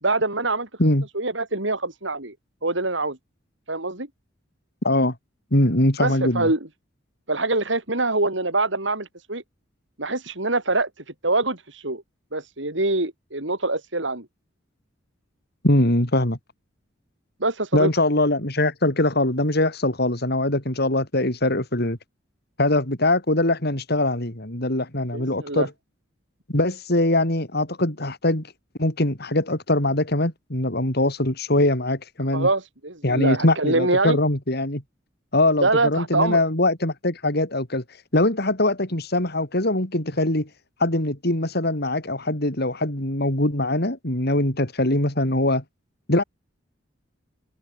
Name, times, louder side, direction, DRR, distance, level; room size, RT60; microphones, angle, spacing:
voice 1, 0.0-0.7 1.1-2.3 2.6-3.2 3.7-4.1 6.0-6.6 7.3-9.4 10.0-10.9 11.2-12.0 12.3-14.3 17.4-17.9 25.1-25.7 32.3-34.2 35.6-36.4, right 2 dB, 70° right, 5.3 m, -24 dB
voice 2, 4.8-5.1 5.5-6.5 15.6-16.4 17.7-22.0 22.6-25.7 26.5-28.5 28.8-32.5 33.0-34.8 35.3-37.8 38.1-40.5 40.8-45.6 46.1-46.2, left 1 dB, 55° left, 4.6 m, -22 dB
head